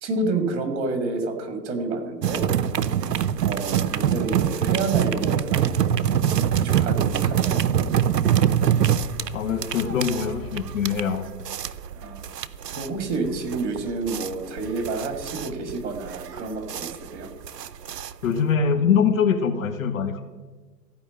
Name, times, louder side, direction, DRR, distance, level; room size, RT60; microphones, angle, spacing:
voice 1, 0.0-2.5 3.4-6.2 6.6-7.6 11.9-12.2 12.8-17.3, right 3 dB, 45° right, 6 dB, 2.4 m, -29 dB
sound 1, 2.2-18.5, right 9 dB, 70° right, 0.7 m, -24 dB
voice 2, 9.3-11.2 18.2-20.2, left 6 dB, 50° left, 7 dB, 1.4 m, -23 dB
14.5 x 5.2 x 8.3 m, 1.3 s
figure-of-eight pair, 125°, 50 cm